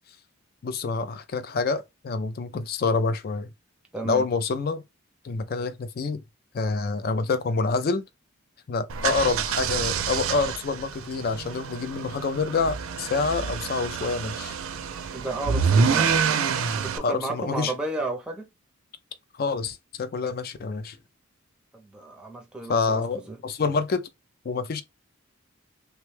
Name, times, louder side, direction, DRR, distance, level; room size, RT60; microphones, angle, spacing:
voice 1, 0.6-3.5 4.0-4.8 5.2-6.2 6.5-8.0 8.7-14.6 17.0-17.7 19.3-21.0 22.7-24.1 24.4-24.8, left 4 dB, 45° left, 0.3 m, -27 dB
voice 2, 3.9-4.3 15.1-16.1 16.8-18.5 21.7-23.4, right 2 dB, 5° right, 0.6 m, -33 dB
sound 1, 8.9-17.0, right 6 dB, 75° right, 0.4 m, -27 dB
3.3 x 2.2 x 3.2 m
head